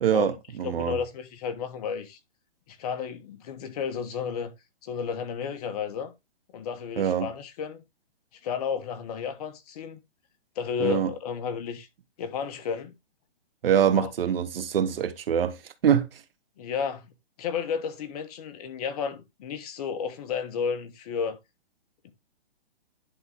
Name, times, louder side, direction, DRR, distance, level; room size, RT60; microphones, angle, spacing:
voice 1, 0.0-1.0 7.0-7.3 10.8-11.1 13.6-15.6 15.8-16.1, right 8 dB, 65° right, 1.2 m, -24 dB
voice 2, 0.6-2.2 2.7-4.5 4.8-6.1 6.5-7.8 8.4-10.0 10.5-11.9 12.2-12.9 13.9-14.1 16.6-17.1 17.4-21.4 22.0-22.1, left 6 dB, 35° left, 1.2 m, -32 dB
10.5 x 3.8 x 3.5 m
hypercardioid pair, 150°, 31 cm